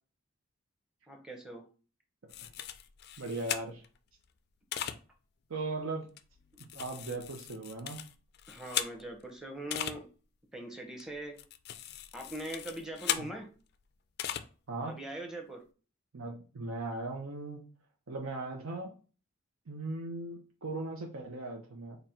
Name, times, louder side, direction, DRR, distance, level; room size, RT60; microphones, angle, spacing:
voice 1, 1.1-1.6 8.5-10.1 10.5-11.4 12.1-13.5 14.9-15.6, right 1 dB, 5° right, 2 dB, 0.7 m, -41 dB
sound 1, 2.3-4.0 4.7-5.0 6.2-9.2 9.7-10.0 11.0-13.3 14.2-14.4, left 10 dB, 50° left, 0.3 m, -38 dB
voice 2, 3.2-3.8 5.5-6.1 6.7-8.0 13.2-13.3 14.7-15.0 16.1-17.7 18.1-18.9 19.7-22.0, right 2 dB, 85° right, 2 dB, 0.7 m, -38 dB
4.0 x 2.2 x 4.3 m, 0.36 s
head